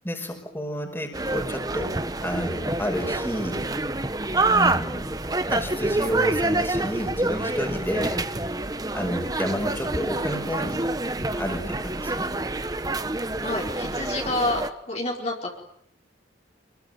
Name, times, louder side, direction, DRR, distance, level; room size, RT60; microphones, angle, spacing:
voice 1, 0.0-2.0 2.2-3.7 4.5-5.2 5.5-8.2 8.9-10.8 11.4-12.3, equal, 10° left, 5 dB, 5.3 m, -30 dB
sound 1, 1.1-14.7, right 2 dB, 20° right, 1.2 m, -27 dB
voice 2, 13.4-14.6 14.9-15.5, left 2 dB, 35° left, -1 dB, 4.8 m, -28 dB
28.5 x 22.0 x 9.3 m, 0.72 s
head